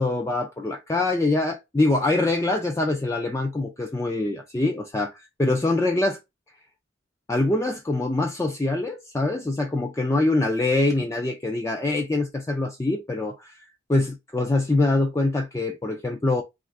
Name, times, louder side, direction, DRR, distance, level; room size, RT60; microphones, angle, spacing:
voice 1, 0.0-5.1 5.4-6.2 7.3-13.5 13.9-16.4, left 2 dB, 15° left, 0.3 m, -24 dB
2.4 x 2.3 x 3.3 m
head